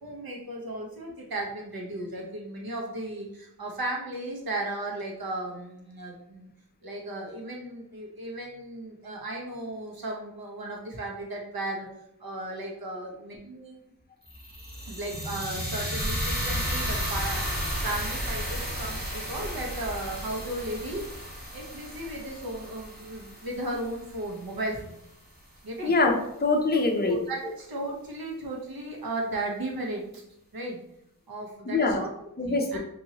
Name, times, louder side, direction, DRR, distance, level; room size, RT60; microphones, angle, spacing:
voice 1, 0.0-6.5 6.8-11.9 12.2-13.8 14.9-17.6 17.8-21.0 21.5-25.0 25.6-25.9 27.0-30.2 30.5-30.8 31.3-32.1 32.4-32.8, right 1 dB, 65° right, -1 dB, 1.0 m, -35 dB
sound 1, 14.3-24.4, equal, 25° right, 1.2 m, -33 dB
voice 2, 25.8-27.2 31.7-32.0 32.4-32.8, left 3 dB, 25° left, 2 dB, 0.6 m, -24 dB
4.2 x 2.7 x 2.8 m, 0.79 s
wide cardioid pair, 65°, 38 cm